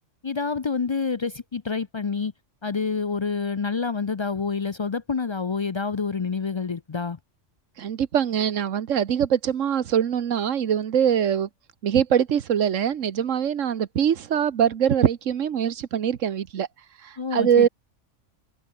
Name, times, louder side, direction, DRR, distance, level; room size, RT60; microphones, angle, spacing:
voice 1, 0.2-2.3 2.6-7.2 17.2-17.7, left 5 dB, 50° left, 0.3 m, -27 dB
voice 2, 7.8-11.5 11.8-16.7 17.0-17.7, right 8 dB, 85° right, 1.4 m, -23 dB
omnidirectional pair, 1.3 m